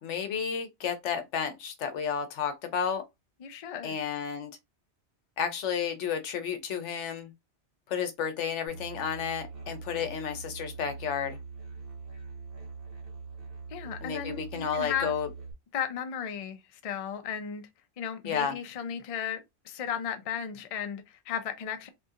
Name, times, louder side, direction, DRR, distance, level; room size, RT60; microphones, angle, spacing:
voice 1, 0.0-3.0 3.8-4.5 5.4-7.3 7.9-11.4 14.0-15.3 18.2-18.6, left 7 dB, 85° left, 1.0 m, -32 dB
voice 2, 3.4-4.0 13.7-15.1 15.7-17.7 18.0-21.9, left 8 dB, 50° left, 0.4 m, -35 dB
Musical instrument, 8.7-15.5, right 4 dB, 55° right, 1.2 m, -43 dB
2.7 x 2.7 x 2.4 m
omnidirectional pair, 1.2 m